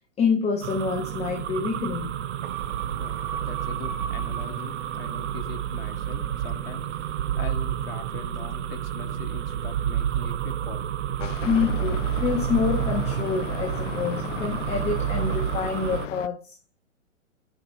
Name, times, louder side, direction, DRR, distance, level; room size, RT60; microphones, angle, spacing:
voice 1, 0.2-2.1 11.4-16.5, left 5 dB, 15° left, 1.1 m, -27 dB
sound 1, 0.6-16.1, right 10 dB, 60° right, 1.0 m, -30 dB
sound 2, 2.4-7.1 7.5-7.6, right 8 dB, 35° right, 1.1 m, -38 dB
voice 2, 3.0-11.2, left 9 dB, 45° left, 1.5 m, -42 dB
sound 3, 11.2-16.3, left 12 dB, 65° left, 0.6 m, -36 dB
9.3 x 5.8 x 4.3 m
hypercardioid pair, 135°, 40 cm